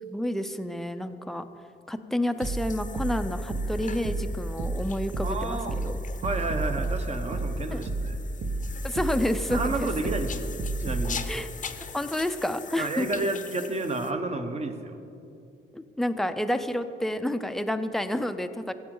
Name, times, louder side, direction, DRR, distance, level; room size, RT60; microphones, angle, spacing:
voice 1, 0.0-1.5 1.9-6.0 7.7-7.8 8.8-9.9 11.3-11.5 11.8-13.3 15.7-18.7, left 1 dB, ahead, 9 dB, 0.5 m, -29 dB
sound 1, 2.4-14.1, left 6 dB, 40° left, 0.7 m, -43 dB
sound 2, 2.4-11.1, right 2 dB, 55° right, 1.3 m, -31 dB
voice 2, 5.2-5.8 6.2-8.2 9.5-11.2 12.8-15.0, right 2 dB, 35° right, 7 dB, 1.0 m, -31 dB
15.5 x 7.9 x 3.8 m, 2.7 s
cardioid pair, 90°, 20 cm